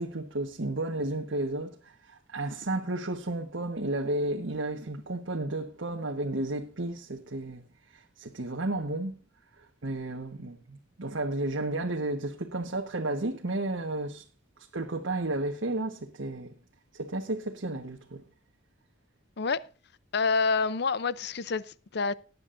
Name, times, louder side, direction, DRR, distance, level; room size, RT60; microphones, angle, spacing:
voice 1, 0.0-7.6 7.9-9.1 9.6-14.2 14.7-16.6 16.9-18.2, right 2 dB, 85° right, 1.3 m, -32 dB
voice 2, 20.1-22.1, left 4 dB, 60° left, 0.6 m, -27 dB
18.0 x 9.6 x 2.6 m
head